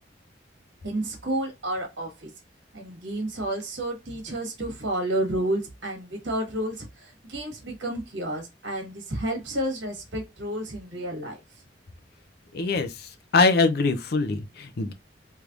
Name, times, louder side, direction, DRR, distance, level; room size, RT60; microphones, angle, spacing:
voice 1, 0.8-2.3 2.7-11.4, right 1 dB, 80° right, 1.5 m, -31 dB
voice 2, 12.5-14.9, left 3 dB, 60° left, 0.6 m, -23 dB
3.3 x 3.1 x 2.4 m
head